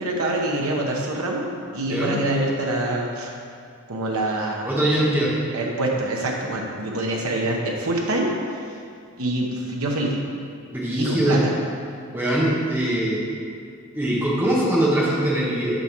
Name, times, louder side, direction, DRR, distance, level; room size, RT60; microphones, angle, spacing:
voice 1, 0.0-3.3 3.9-4.7 5.5-8.3 9.2-10.1 11.0-11.5, right 1 dB, 85° right, -1 dB, 1.0 m, -25 dB
voice 2, 4.6-5.3 10.7-11.4 12.1-13.3 13.9-15.7, right 1 dB, 10° right, -6 dB, 1.3 m, -22 dB
6.8 x 4.7 x 6.0 m, 2.3 s
head